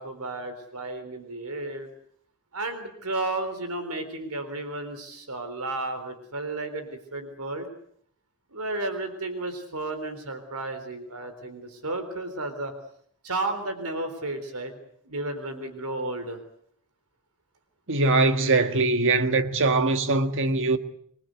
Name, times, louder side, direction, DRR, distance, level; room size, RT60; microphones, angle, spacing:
voice 1, 0.0-1.9 2.5-7.7 8.5-12.7 13.2-14.7 15.1-16.4, right 2 dB, 75° right, 3.9 m, -33 dB
voice 2, 17.9-20.8, right 3 dB, 60° right, 1.6 m, -22 dB
27.0 x 21.5 x 8.1 m
head